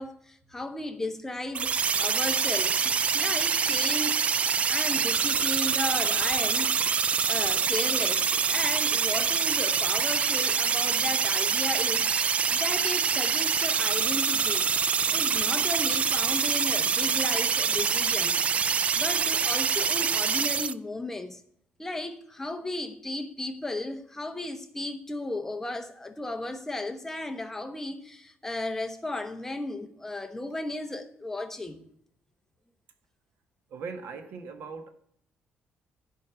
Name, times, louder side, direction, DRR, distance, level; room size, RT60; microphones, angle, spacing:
voice 1, 0.0-1.7 2.0-4.3 4.7-6.8 7.3-12.1 12.5-14.7 15.1-21.4 21.8-31.9, left 2 dB, 10° left, 1.0 m, -35 dB
sound 1, 1.5-20.7, right 6 dB, 35° right, 0.3 m, -25 dB
voice 2, 33.7-34.9, right 5 dB, 80° right, 1.6 m, -39 dB
12.5 x 5.4 x 8.0 m
cardioid pair, 145°, 4 cm